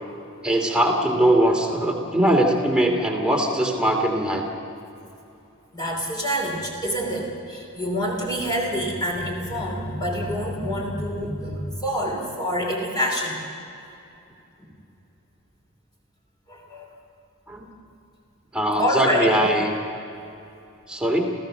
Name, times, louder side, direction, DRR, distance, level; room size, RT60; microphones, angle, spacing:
voice 1, 0.4-4.5 11.2-11.3 17.5-17.7 18.5-19.7 20.9-21.3, right 1 dB, 5° right, 0 dB, 2.5 m, -21 dB
voice 2, 5.7-13.4 16.5-16.9 18.8-19.3, equal, 20° left, -1 dB, 3.2 m, -26 dB
28.5 x 15.5 x 6.6 m, 2.7 s
head